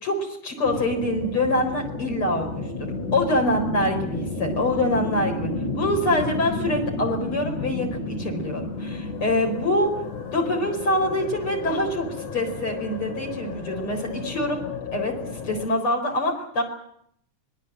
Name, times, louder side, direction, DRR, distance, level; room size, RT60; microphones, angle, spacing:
voice 1, 0.0-5.5 5.7-9.9 10.3-14.6 14.9-15.1 15.4-16.6, left 1 dB, 45° left, 2 dB, 5.1 m, -25 dB
sound 1, 0.6-15.7, left 3 dB, 75° left, 4.0 m, -32 dB
25.5 x 20.5 x 7.8 m, 0.72 s
omnidirectional pair, 3.5 m